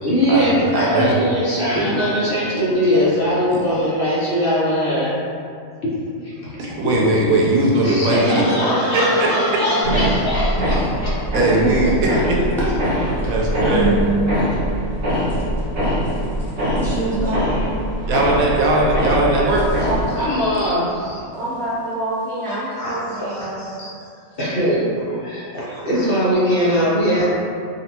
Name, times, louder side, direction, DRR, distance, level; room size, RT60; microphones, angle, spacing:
voice 1, 0.0-5.2 5.8-5.9 6.4-6.5 7.8-11.1 20.2-21.2 22.8-23.0 23.6-23.9 24.4-27.2, equal, 55° left, -8 dB, 0.7 m, -21 dB
voice 2, 0.7-1.2 3.5-3.6 6.6-8.4 8.9-9.3 11.3-11.9 12.2-12.5 13.2-14.0 18.1-19.7, right 2 dB, 85° right, -3 dB, 1.1 m, -18 dB
voice 3, 1.7-2.6 2.9-3.0 8.1-10.3 11.6-11.9 12.6-13.3 13.7-14.4 15.3-15.4 16.1-16.2 16.5-17.7 19.8-20.4 21.3-23.6, right 1 dB, 5° left, -10 dB, 0.4 m, -25 dB
sound 1, 9.8-20.1, equal, 50° right, 0.9 m, -22 dB
3.9 x 2.1 x 2.9 m, 2.4 s
omnidirectional pair, 1.4 m